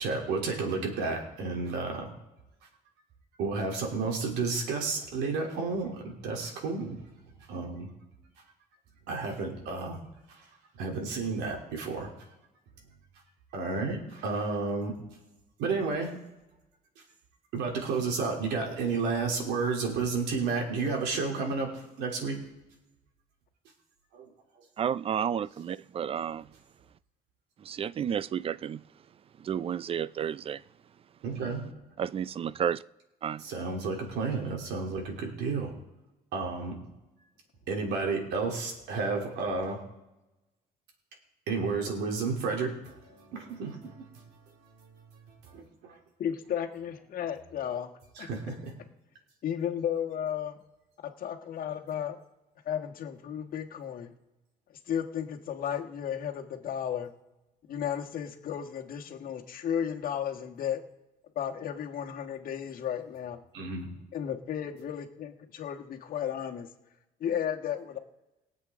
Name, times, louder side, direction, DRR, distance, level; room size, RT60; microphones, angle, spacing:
voice 1, 0.0-2.1 3.4-7.0 7.5-7.9 9.1-10.0 10.3-10.4 10.8-12.1 13.5-14.9 15.6-16.1 17.5-22.4 24.1-24.3 31.2-31.8 33.4-35.7 36.3-36.8 37.7-39.8 41.5-42.7 43.0-44.1 45.5-46.0 48.2-48.8 63.5-63.9, right 4 dB, 85° right, 3.1 m, -31 dB
voice 2, 24.8-26.5 27.6-28.8 29.4-30.6 32.0-32.8 33.2-33.4, right 8 dB, 35° right, 0.4 m, -31 dB
voice 3, 46.2-47.9 48.2-48.3 49.4-50.6 51.0-52.2 52.6-54.1 54.9-57.1 57.7-60.8 61.3-63.4 64.1-66.7 67.2-68.0, left 9 dB, 55° left, 1.4 m, -34 dB
22.5 x 7.7 x 3.7 m
cardioid pair, 110°, 17 cm